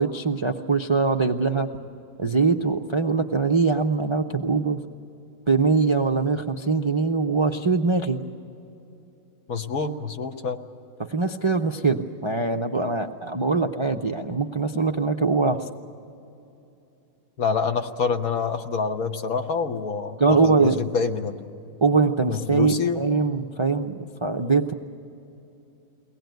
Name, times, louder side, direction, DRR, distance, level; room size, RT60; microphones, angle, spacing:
voice 1, 0.0-1.7 2.2-4.8 5.5-8.2 11.1-15.7 20.2-20.8 21.8-24.7, right 4 dB, 40° right, 4 dB, 0.4 m, -22 dB
voice 2, 9.5-10.6 17.4-21.5 22.3-23.0, left 5 dB, 70° left, 5 dB, 1.6 m, -26 dB
23.0 x 18.5 x 9.2 m, 2.8 s
omnidirectional pair, 1.6 m